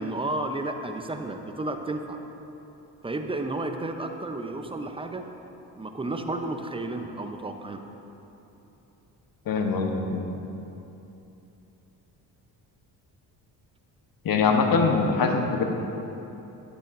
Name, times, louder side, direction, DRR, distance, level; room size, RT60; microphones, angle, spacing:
voice 1, 0.0-2.2 3.0-5.3 5.8-7.8, right 2 dB, 10° right, 5 dB, 0.6 m, -32 dB
voice 2, 9.5-10.3 14.2-15.6, left 4 dB, 50° left, 4 dB, 1.0 m, -23 dB
9.9 x 9.0 x 2.6 m, 3.0 s
supercardioid pair, 60°, 45 cm